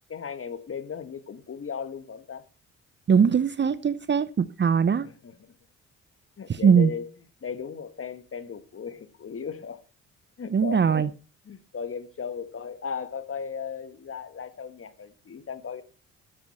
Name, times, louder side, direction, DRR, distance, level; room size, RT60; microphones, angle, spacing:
voice 1, 0.1-2.4 5.0-5.5 6.4-7.1 7.4-9.8 10.4-11.0 11.4-15.8, left 6 dB, 40° left, 1.6 m, -36 dB
voice 2, 3.1-5.1 6.5-6.9 10.5-11.1, right 6 dB, 30° right, 0.8 m, -21 dB
13.0 x 10.5 x 4.3 m
hypercardioid pair, 50°, 34 cm